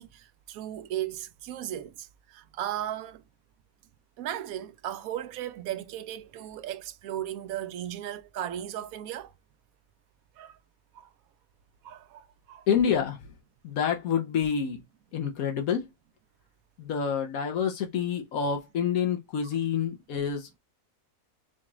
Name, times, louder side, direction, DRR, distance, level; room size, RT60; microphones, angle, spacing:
voice 1, 0.0-3.2 4.2-9.3 10.4-10.6 10.9-11.1 11.8-12.7, right 11 dB, 80° right, 1.0 m, -36 dB
voice 2, 12.7-13.3 13.6-14.8 15.1-15.9 16.8-20.6, left 7 dB, 80° left, 1.2 m, -28 dB
5.0 x 2.4 x 2.9 m
omnidirectional pair, 1.5 m